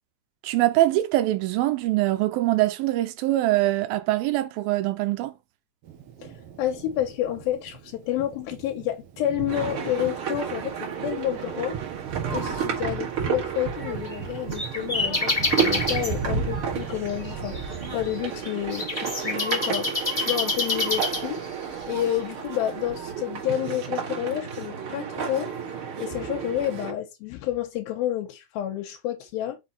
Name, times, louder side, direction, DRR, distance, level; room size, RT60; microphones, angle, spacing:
voice 1, 0.4-5.3, right 16 dB, 85° right, 2.5 m, -23 dB
Thunder, 5.8-18.4, right 5 dB, 65° right, 1.5 m, -36 dB
voice 2, 6.2-11.8 12.3-21.4 21.9-25.5 26.0-29.6, left 12 dB, 80° left, 2.6 m, -30 dB
sound 1, 9.5-26.9, right 7 dB, 50° right, 1.8 m, -32 dB
sound 2, 13.8-16.1 16.8-21.6, left 2 dB, 30° left, 0.6 m, -28 dB
5.8 x 4.0 x 4.1 m
omnidirectional pair, 4.2 m